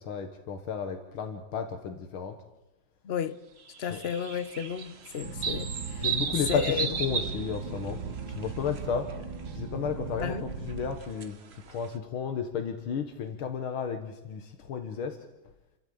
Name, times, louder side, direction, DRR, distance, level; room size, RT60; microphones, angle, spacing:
voice 1, 0.0-2.4 3.9-4.0 6.0-8.0 8.4-9.1 9.5-10.4 10.6-11.4 11.7-15.2, left 6 dB, 80° left, 2.2 m, -33 dB
voice 2, 3.0-3.4 3.8-6.1 6.3-6.9 10.2-10.4, left 8 dB, 55° left, 0.7 m, -33 dB
sound 1, 3.7-8.8 9.1-9.5 10.7-11.9, right 6 dB, 40° right, 1.1 m, -35 dB
sound 2, 5.2-11.0, right 5 dB, 60° right, 3.4 m, -38 dB
29.0 x 13.0 x 8.7 m
omnidirectional pair, 2.3 m